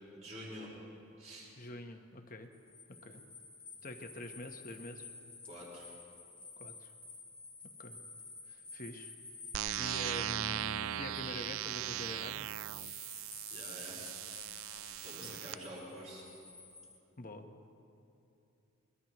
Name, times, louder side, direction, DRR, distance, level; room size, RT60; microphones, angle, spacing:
voice 1, 0.1-0.7 1.2-1.5 5.5-5.9 13.5-14.0 15.0-16.3, equal, 35° right, -5 dB, 4.6 m, -47 dB
voice 2, 1.6-2.5 3.0-3.2 3.8-5.1 6.6-6.9 7.8-8.0 8.5-9.1 9.8-12.7 15.2-15.4 17.2-17.5, left 1 dB, 40° left, 5 dB, 1.0 m, -45 dB
sound 1, 2.5-11.8 12.6-17.0, left 4 dB, 5° left, 1.3 m, -52 dB
sound 2, 9.5-15.5, right 11 dB, 70° right, 0.3 m, -39 dB
22.0 x 21.0 x 3.0 m, 2.7 s
head